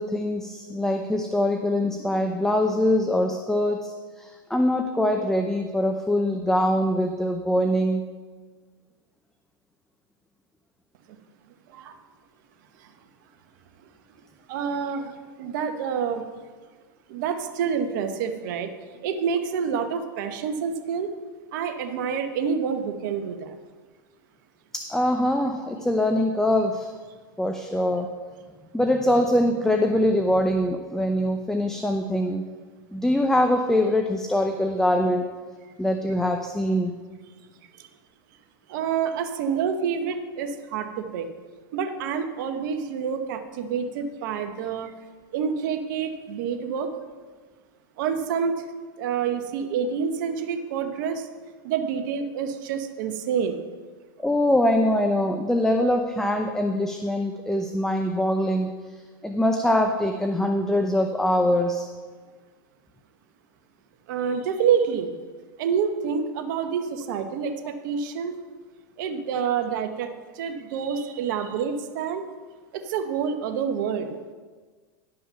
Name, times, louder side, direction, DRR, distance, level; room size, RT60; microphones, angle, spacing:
voice 1, 0.0-8.0 24.7-26.9 27.4-28.1 28.7-32.4 32.9-35.3 35.8-36.9 54.2-58.7 59.2-61.9, left 1 dB, 5° left, 4 dB, 0.6 m, -23 dB
voice 2, 14.5-16.3 17.1-18.7 19.0-21.1 21.5-23.5 37.8-37.9 38.7-41.3 41.7-44.9 45.3-46.9 48.0-48.6 49.0-51.3 51.6-53.6 64.1-65.1 65.6-68.4 69.0-72.2 72.7-74.1, right 7 dB, 60° right, 7 dB, 1.1 m, -27 dB
11.5 x 5.5 x 5.7 m, 1.5 s
hypercardioid pair, 115°, 12 cm